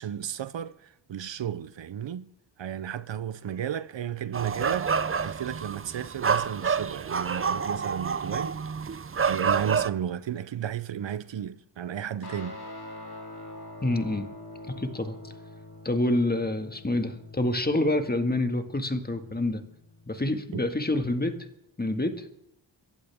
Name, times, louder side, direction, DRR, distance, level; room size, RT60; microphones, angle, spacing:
voice 1, 0.0-2.3 2.6-8.6 9.2-12.6 20.5-20.7, right 9 dB, 70° right, 0.8 m, -33 dB
sound 1, 4.3-9.9, right 6 dB, 30° right, 0.6 m, -28 dB
Guitar, 12.2-21.0, left 1 dB, 55° left, 5.2 m, -45 dB
voice 2, 13.8-14.2 14.7-15.2 15.8-19.6 20.1-21.3 21.8-22.3, left 1 dB, 20° left, 1.9 m, -27 dB
25.5 x 15.0 x 3.6 m
cardioid pair, 65°, 46 cm